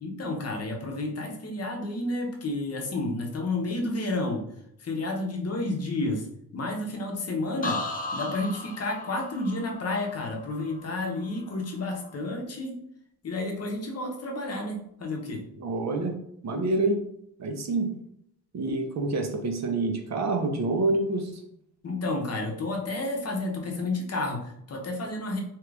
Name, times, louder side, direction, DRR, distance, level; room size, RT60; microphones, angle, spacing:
voice 1, 0.0-4.4 4.8-6.2 6.5-7.8 8.1-12.8 13.2-15.4 21.8-25.4, left 2 dB, 45° left, 1 dB, 0.7 m, -31 dB
sound 1, 7.6-11.4 11.8-12.3, left 2 dB, 25° left, 0.4 m, -36 dB
voice 2, 15.6-16.1 16.4-17.0 17.4-17.9 18.5-21.4, right 2 dB, 50° right, 4 dB, 0.6 m, -27 dB
2.9 x 2.4 x 3.3 m, 0.73 s
cardioid pair, 115°, 36 cm